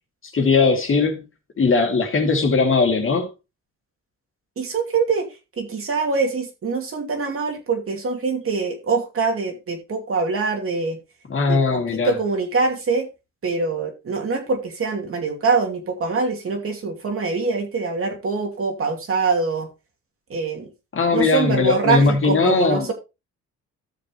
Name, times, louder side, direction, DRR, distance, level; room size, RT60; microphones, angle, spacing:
voice 1, 0.3-1.2 1.6-3.3 11.3-12.1 20.9-22.9, left 4 dB, 45° left, 2.7 m, -19 dB
voice 2, 4.6-5.3 5.6-11.0 11.5-13.1 13.4-19.7 20.3-20.7 21.1-22.9, right 4 dB, 45° right, 2.6 m, -24 dB
14.0 x 6.5 x 3.0 m
cardioid pair, 90°, 30 cm